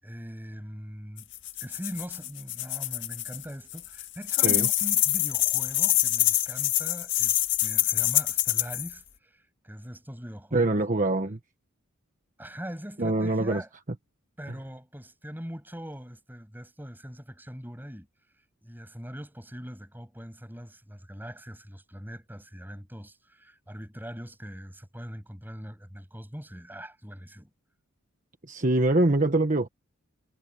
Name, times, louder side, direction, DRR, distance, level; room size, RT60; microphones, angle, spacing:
voice 1, 0.0-1.3 1.6-10.7 12.4-13.7 14.4-18.1 18.6-27.5, equal, 10° right, 7.5 m, -41 dB
sound 1, 1.2-3.4 3.7-8.9, left 14 dB, 60° left, 2.0 m, -25 dB
voice 2, 10.5-11.4 13.0-13.6 28.4-29.7, right 2 dB, 40° right, 1.3 m, -24 dB
head